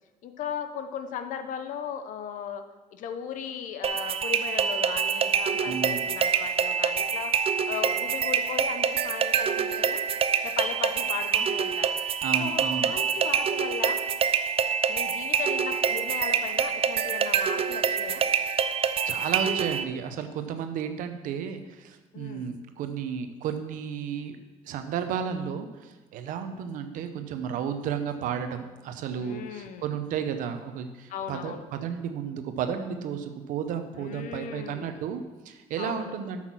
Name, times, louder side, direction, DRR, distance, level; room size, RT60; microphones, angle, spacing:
voice 1, 0.2-2.6 2.9-7.3 7.7-10.0 10.4-12.0 12.4-14.0 14.9-18.2 22.1-22.5 29.2-29.9 31.1-31.7 34.0-35.0 35.8-36.1, left 8 dB, 75° left, 8 dB, 0.9 m, -37 dB
sound 1, 3.8-19.8, right 7 dB, 45° right, 0.5 m, -26 dB
voice 2, 5.6-6.0 12.2-12.9 19.0-24.4 24.6-36.5, right 7 dB, 80° right, 8 dB, 0.9 m, -33 dB
8.2 x 6.0 x 6.1 m, 1.2 s
cardioid pair, 100°, 13 cm